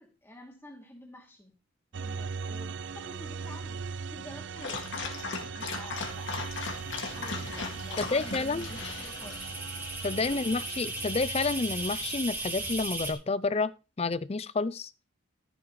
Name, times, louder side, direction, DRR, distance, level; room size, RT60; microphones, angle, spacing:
voice 1, 0.0-1.5 1.9-6.3 7.1-9.4 10.2-10.5, equal, 10° left, 2.7 m, -49 dB
sound 1, 1.9-12.7, right 5 dB, 60° right, 0.4 m, -40 dB
Dog, 4.6-9.5, left 4 dB, 65° left, 2.2 m, -38 dB
sound 2, 5.9-13.1, right 2 dB, 10° right, 1.6 m, -38 dB
voice 2, 8.0-8.7 10.0-13.7 14.0-14.9, left 3 dB, 30° left, 0.4 m, -29 dB
14.5 x 8.9 x 3.2 m
head